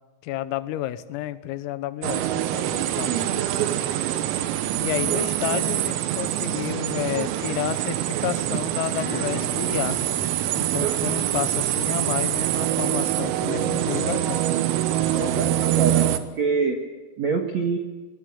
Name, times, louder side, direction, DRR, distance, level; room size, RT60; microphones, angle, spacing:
voice 1, 0.2-3.2 4.8-10.0 10.6-14.5 15.1-15.5, left 14 dB, 90° left, 13 dB, 3.7 m, -31 dB
sound 1, 2.0-16.2, right 12 dB, 85° right, 3.9 m, -25 dB
Acoustic guitar / Strum, 8.9-13.2, left 2 dB, 45° left, 6.7 m, -41 dB
voice 2, 15.1-16.8 17.2-17.8, right 5 dB, 65° right, 3 dB, 1.7 m, -25 dB
21.5 x 21.0 x 8.6 m, 1.3 s
omnidirectional pair, 5.9 m